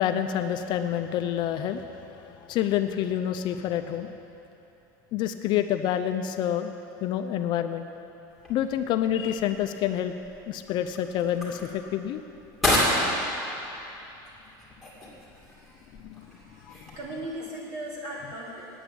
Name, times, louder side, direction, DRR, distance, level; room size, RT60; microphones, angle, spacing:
voice 1, 0.0-4.1 5.1-6.7 7.0-7.8 8.5-10.1 10.5-12.2 16.0-16.3 16.7-16.8, left 10 dB, 45° left, 8 dB, 0.5 m, -28 dB
sound 1, 8.3-17.5, left 1 dB, ahead, 2.5 m, -32 dB
voice 2, 16.4-18.7, right 1 dB, 35° right, -4 dB, 3.0 m, -38 dB
9.0 x 8.6 x 8.5 m, 3.0 s
supercardioid pair, 145°, 11 cm